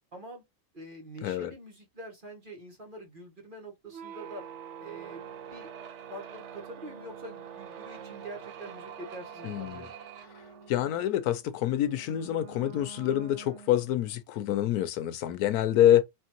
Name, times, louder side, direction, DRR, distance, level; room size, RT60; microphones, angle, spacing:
voice 1, 0.1-0.4 0.7-4.5 4.8-5.7 6.1-9.9, right 1 dB, 35° right, 1.4 m, -45 dB
voice 2, 1.2-1.5 9.4-9.9 10.7-16.0, left 12 dB, 85° left, 1.2 m, -26 dB
sound 1, 3.9-14.2, right 7 dB, 60° right, 0.9 m, -45 dB
4.4 x 3.1 x 2.9 m
omnidirectional pair, 1.6 m